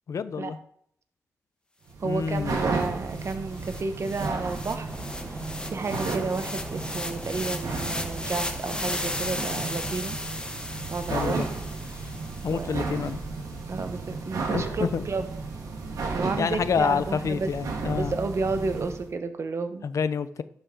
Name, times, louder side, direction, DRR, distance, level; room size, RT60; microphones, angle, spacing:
voice 1, 0.1-0.6 2.0-2.6 11.1-11.5 12.4-13.2 14.5-15.0 16.4-18.2 19.8-20.4, left 6 dB, 65° left, 14 dB, 0.5 m, -28 dB
sound 1, 1.9-19.1, right 4 dB, 90° right, 1.4 m, -34 dB
voice 2, 2.0-4.9 5.3-5.4 5.7-10.2 10.9-11.4 11.9-12.0 12.5-12.8 13.7-15.3 16.1-17.5 17.9-19.8, right 4 dB, 55° right, 8 dB, 1.0 m, -31 dB
sound 2, 2.4-2.5 2.7-13.1, left 1 dB, 15° left, 1.0 m, -36 dB
sound 3, 4.9-10.0, equal, ahead, 0.6 m, -43 dB
11.0 x 5.3 x 3.7 m, 0.66 s
cardioid pair, 80°, 6 cm